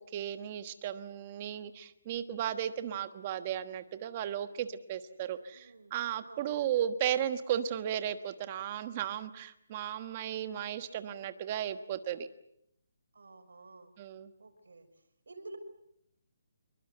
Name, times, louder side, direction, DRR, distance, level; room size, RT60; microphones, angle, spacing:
voice 1, 0.0-12.3 14.0-14.3, right 10 dB, 20° right, 11 dB, 1.3 m, -35 dB
voice 2, 5.3-5.9 6.2-6.6 13.1-13.9 14.4-14.9 15.3-15.6, right 2 dB, 85° right, 5 dB, 6.3 m, -51 dB
26.5 x 22.5 x 8.0 m, 0.73 s
hypercardioid pair, 175°, 0 cm